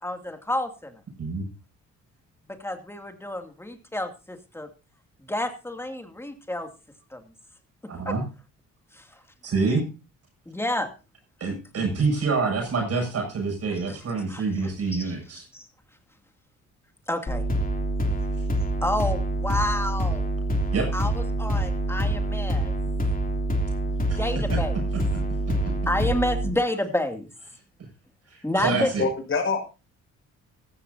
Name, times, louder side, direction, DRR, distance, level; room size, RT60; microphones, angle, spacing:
voice 1, 0.0-1.0 2.5-4.7 5.3-6.7 7.1-7.2 7.8-8.2 8.9-9.1 10.5-10.9 11.8-11.9 13.9-14.0 14.3-15.2 15.5-15.7 17.1-17.4 18.8-20.3 20.9-22.7 24.0-24.8 25.9-27.3 28.4-28.9, left 1 dB, 10° left, 6 dB, 2.5 m, -29 dB
voice 2, 7.9-8.2 9.4-9.8 11.4-15.4 20.7-20.9 24.1-24.2 24.5-24.6 28.3-29.0, right 4 dB, 55° right, 1 dB, 7.5 m, -26 dB
sound 1, 17.3-26.5, right 1 dB, 30° left, 3.0 m, -26 dB
voice 3, 28.7-29.6, left 4 dB, 45° left, 3 dB, 6.2 m, -26 dB
15.5 x 14.5 x 2.7 m, 0.31 s
cardioid pair, 90°, 30 cm